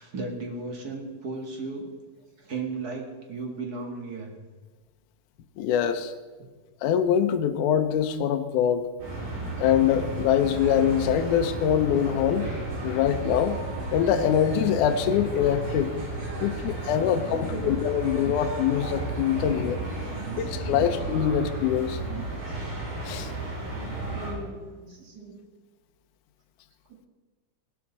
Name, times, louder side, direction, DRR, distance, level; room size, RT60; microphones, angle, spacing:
voice 1, 0.0-1.9 2.4-4.3 9.1-9.3 12.9-13.0 16.3-17.7 18.0-18.1 19.4-20.9 21.2-21.3 22.1-22.6 23.7-25.4, right 3 dB, 35° right, 2 dB, 1.6 m, -38 dB
voice 2, 5.6-6.1 6.8-8.9 9.6-12.5 12.8-13.6 13.9-15.9 16.4-19.8 20.4-22.0 23.1-23.3, left 9 dB, 75° left, 7 dB, 2.1 m, -24 dB
sound 1, 9.0-24.3, right 2 dB, 70° right, 6.5 m, -33 dB
18.0 x 12.5 x 4.1 m, 1.3 s
omnidirectional pair, 4.2 m